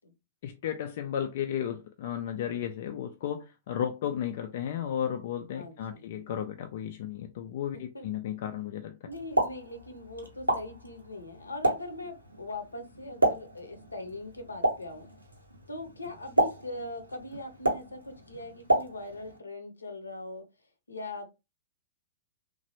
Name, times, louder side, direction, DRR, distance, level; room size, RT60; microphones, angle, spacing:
voice 1, 0.4-9.0, left 9 dB, 50° left, 0.3 m, -34 dB
voice 2, 5.5-6.0 7.7-8.0 9.1-15.1 15.7-20.5 20.9-21.3, left 2 dB, 80° left, 0.6 m, -41 dB
Explosion, 9.1-19.4, right 2 dB, 85° right, 0.8 m, -32 dB
3.1 x 2.1 x 2.9 m
figure-of-eight pair, 105°, 0 cm